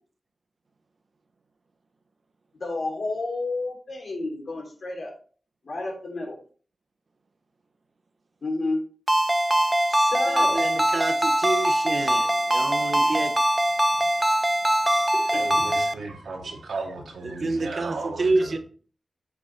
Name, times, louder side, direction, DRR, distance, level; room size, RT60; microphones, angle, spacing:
voice 1, 2.6-5.1 5.6-6.4 8.4-8.8 9.9-10.6 13.0-13.1 15.1-15.4, left 2 dB, 60° left, -1 dB, 2.9 m, -30 dB
Ringtone, 9.1-15.9, right 1 dB, 15° right, 0.5 m, -22 dB
voice 2, 10.3-13.3 17.2-18.6, right 3 dB, 55° right, 9 dB, 0.8 m, -28 dB
voice 3, 15.3-18.6, right 3 dB, 90° right, 0 dB, 2.0 m, -35 dB
8.1 x 5.2 x 3.2 m, 0.42 s
cardioid pair, 70°, 0 cm